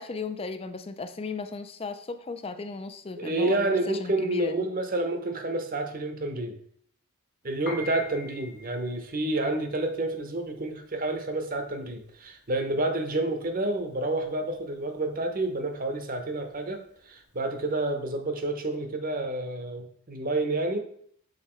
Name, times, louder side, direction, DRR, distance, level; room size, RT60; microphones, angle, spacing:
voice 1, 0.0-4.6, left 4 dB, 25° left, 10 dB, 0.4 m, -36 dB
voice 2, 3.2-6.6 7.4-16.8 17.1-20.8, right 2 dB, 40° right, 6 dB, 0.9 m, -29 dB
Piano, 7.5-17.9, left 2 dB, 50° left, 1.3 m, -45 dB
6.5 x 4.1 x 4.4 m, 0.63 s
head